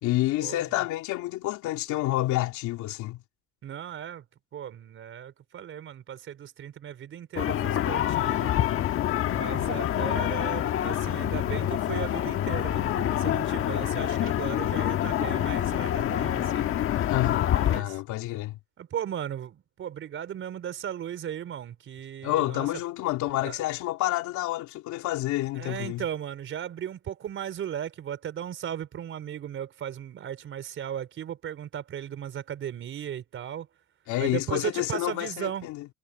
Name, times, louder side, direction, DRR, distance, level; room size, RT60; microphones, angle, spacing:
voice 1, 0.0-3.2 17.0-18.6 22.2-26.0 34.1-35.9, left 16 dB, 55° left, 3.2 m, -29 dB
voice 2, 3.6-4.3 4.5-8.7 9.3-16.9 17.5-18.0 18.8-22.7 23.4-23.6 25.5-33.7 34.2-35.7, right 9 dB, 35° right, 4.8 m, -36 dB
sound 1, 7.4-17.8, left 11 dB, 40° left, 1.5 m, -26 dB
cardioid pair, 150°, 35 cm